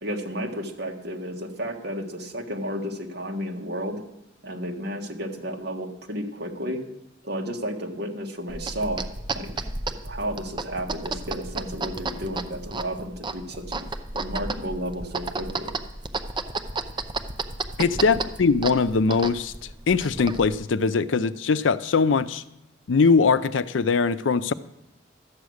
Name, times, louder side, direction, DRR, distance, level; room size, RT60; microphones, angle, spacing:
voice 1, 0.0-4.0 4.4-6.8 7.2-9.0 9.3-9.5 10.0-13.8 14.1-15.7 17.9-18.1, equal, 60° right, 1.7 m, -32 dB
sound 1, 8.5-20.6, right 3 dB, 25° right, 0.6 m, -33 dB
voice 2, 17.8-19.5 19.9-22.4 22.9-24.5, left 4 dB, 80° left, 0.5 m, -21 dB
13.0 x 8.2 x 6.4 m
head